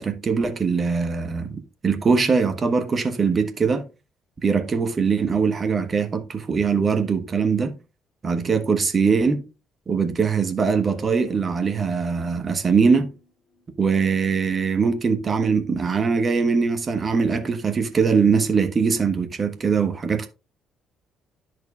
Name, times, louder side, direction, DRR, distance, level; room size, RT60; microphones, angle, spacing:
voice 1, 0.0-1.6 1.8-3.8 4.4-7.8 8.2-9.4 9.9-13.1 13.8-20.3, right 5 dB, 35° right, 1.2 m, -22 dB
sound 1, 10.9-14.2 14.4-14.5, left 1 dB, 65° left, 4.8 m, -49 dB
10.5 x 6.3 x 2.4 m
figure-of-eight pair, 45°, 0 cm